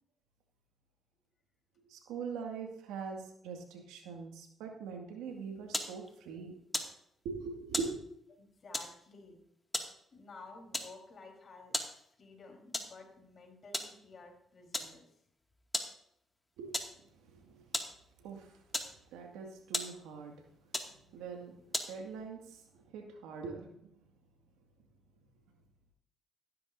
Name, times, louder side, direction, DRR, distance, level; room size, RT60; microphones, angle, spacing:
voice 1, 1.9-6.5 7.2-8.0 16.6-16.7 17.4-17.6 18.2-18.5 19.1-20.4 21.1-21.5 21.9-22.6 22.9-23.7, right 5 dB, 85° right, 2 dB, 2.1 m, -42 dB
sound 1, 5.3-22.2, left 1 dB, 15° left, 2.2 m, -42 dB
voice 2, 8.3-9.4 10.1-15.1, left 3 dB, 50° left, 2 dB, 4.1 m, -53 dB
15.0 x 13.0 x 2.7 m, 0.73 s
supercardioid pair, 55°, 0 cm